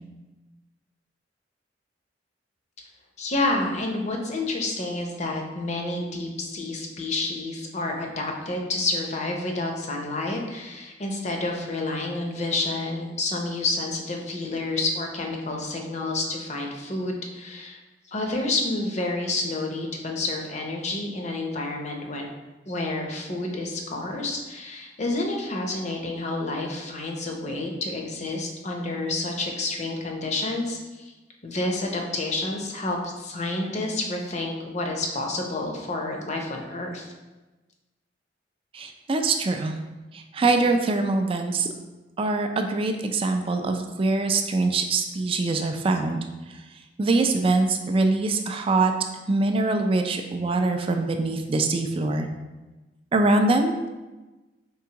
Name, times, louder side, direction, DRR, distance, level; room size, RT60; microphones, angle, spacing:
voice 1, 3.2-17.8 18.1-22.3 22.7-31.1 31.4-37.1, left 2 dB, 40° left, 2 dB, 0.6 m, -29 dB
voice 2, 38.7-39.8 40.1-41.7 42.2-46.2 47.0-48.9 49.3-52.3 53.1-53.9, right 3 dB, 30° right, 5 dB, 0.3 m, -23 dB
4.6 x 3.4 x 2.9 m, 1.1 s
head